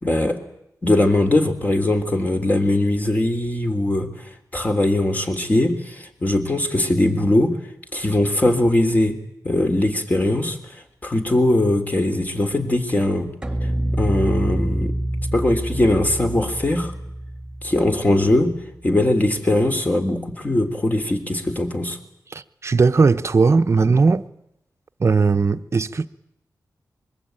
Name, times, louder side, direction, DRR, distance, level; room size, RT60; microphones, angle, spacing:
voice 1, 0.0-0.4 0.8-4.1 4.5-7.6 7.9-9.2 9.4-10.6 11.0-13.3 13.9-14.9 15.3-16.9 17.6-18.5 18.8-22.0, left 1 dB, 25° left, 3.4 m, -20 dB
sound 1, 13.4-18.7, right 1 dB, 10° right, 2.3 m, -26 dB
voice 2, 22.3-24.2 25.0-26.1, right 4 dB, 40° right, 1.0 m, -18 dB
25.0 x 22.5 x 9.1 m
wide cardioid pair, 100°, 7 cm